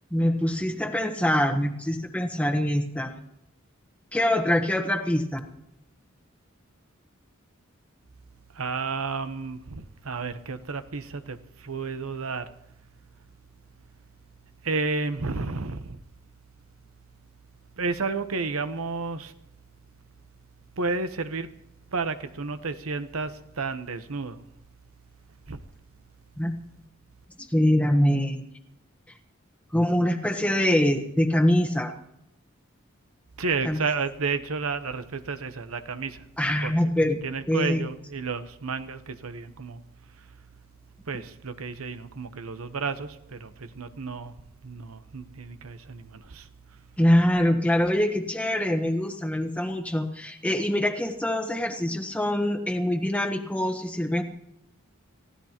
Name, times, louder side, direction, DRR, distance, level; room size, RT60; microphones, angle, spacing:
voice 1, 0.1-3.1 4.1-5.4 26.4-26.5 27.4-28.5 29.7-31.9 33.6-33.8 36.4-37.2 37.5-37.8 47.0-54.2, left 1 dB, 5° left, 1.2 m, -24 dB
voice 2, 8.5-12.5 14.6-16.0 17.8-19.3 20.8-21.5 21.9-24.4 25.5-25.6 33.4-36.2 36.6-39.8 41.1-44.3 44.6-46.5, right 4 dB, 85° right, 0.9 m, -31 dB
29.5 x 15.5 x 3.0 m
head